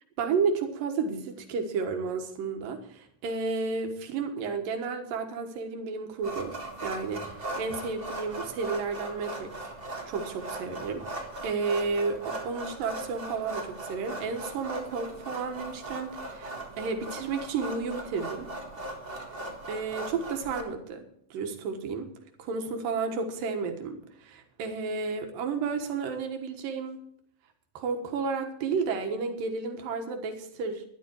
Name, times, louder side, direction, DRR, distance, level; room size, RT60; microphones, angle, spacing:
voice 1, 0.2-6.5 6.8-9.5 10.1-18.5 19.7-21.0 21.3-22.1 22.4-27.0 27.7-30.8, right 4 dB, 85° right, 5 dB, 3.1 m, -32 dB
sound 1, 6.2-20.6, right 2 dB, 35° right, 0.8 m, -39 dB
12.5 x 11.0 x 4.6 m, 0.66 s
omnidirectional pair, 3.9 m